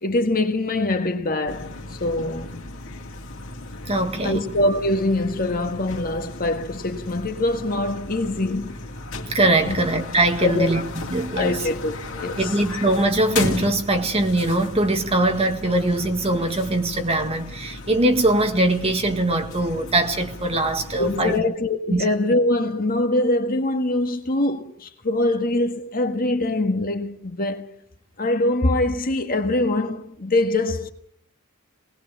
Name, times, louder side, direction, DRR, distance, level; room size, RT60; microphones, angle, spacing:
voice 1, 0.0-2.6 4.2-8.8 9.7-9.8 10.4-10.7 11.3-12.4 21.0-27.7 28.2-30.9, left 2 dB, 40° left, 1.6 m, -23 dB
sound 1, 1.5-21.4, left 2 dB, 65° left, 2.6 m, -35 dB
voice 2, 3.9-4.4 9.3-11.7 12.4-21.4 21.9-22.0, right 2 dB, 30° right, 1.9 m, -22 dB
20.0 x 20.0 x 7.4 m
head